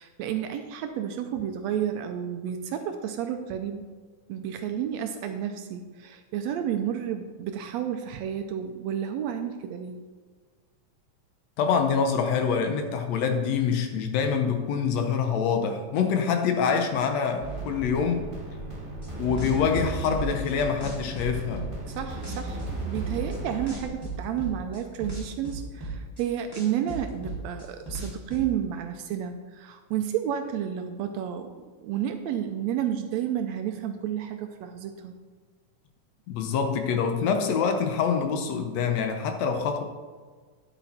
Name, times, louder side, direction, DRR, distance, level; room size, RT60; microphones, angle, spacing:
voice 1, 0.0-3.8 4.3-10.0 21.9-31.5 31.8-35.2, right 9 dB, 80° right, 7 dB, 1.7 m, -31 dB
voice 2, 11.6-18.2 19.2-21.7 36.3-39.8, left 6 dB, 70° left, 6 dB, 1.9 m, -25 dB
sound 1, 17.4-23.9, right 3 dB, 15° right, 1.3 m, -35 dB
sound 2, 19.0-20.5 20.8-21.9 22.2-23.4 23.7-26.2 26.5-28.5, right 2 dB, 10° left, 1.7 m, -36 dB
10.5 x 8.1 x 4.2 m, 1.5 s
omnidirectional pair, 3.4 m